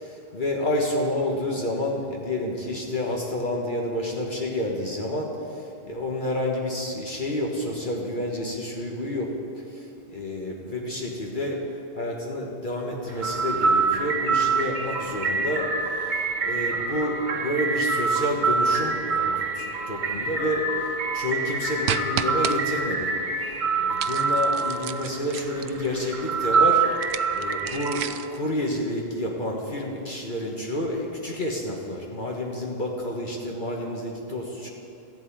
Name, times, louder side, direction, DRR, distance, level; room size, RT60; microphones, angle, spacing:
voice 1, 0.0-11.6 11.9-15.7 16.4-23.1 23.8-27.1 27.3-34.7, left 1 dB, 50° left, -1 dB, 1.6 m, -29 dB
sound 1, 13.1-28.0, right 4 dB, 45° right, 1.3 m, -26 dB
sound 2, 21.9-22.6 24.0-25.9 26.9-28.4, right 10 dB, 85° right, 0.9 m, -31 dB
14.5 x 7.9 x 9.3 m, 2.8 s
omnidirectional pair, 1.1 m